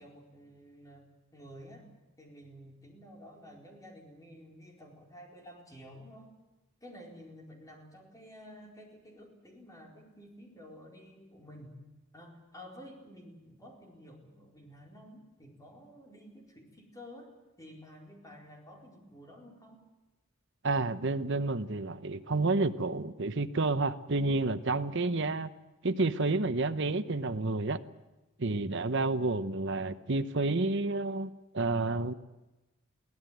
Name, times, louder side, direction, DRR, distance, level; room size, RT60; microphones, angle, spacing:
voice 1, 0.0-1.9 2.2-6.3 6.8-11.8 12.1-19.8, equal, 15° left, 0 dB, 4.5 m, -51 dB
voice 2, 20.6-25.5 25.8-27.8 28.4-32.1, right 3 dB, 55° right, 11 dB, 1.0 m, -30 dB
23.0 x 16.5 x 9.3 m, 1.1 s
head